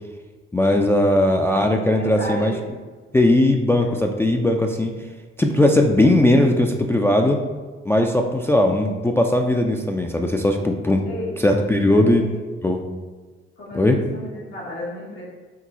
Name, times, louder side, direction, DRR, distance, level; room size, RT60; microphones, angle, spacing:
voice 1, 0.5-2.5 3.1-4.9 5.4-7.4 7.9-11.0 11.4-12.2 12.6-12.8 13.7-14.0, left 1 dB, 10° left, 2 dB, 0.3 m, -18 dB
voice 2, 2.0-2.5 3.8-3.9 11.0-11.3 11.9-12.3 13.6-15.2, left 1 dB, 85° left, -7 dB, 1.3 m, -33 dB
4.8 x 2.9 x 2.9 m, 1.4 s
figure-of-eight pair, 45°, 30 cm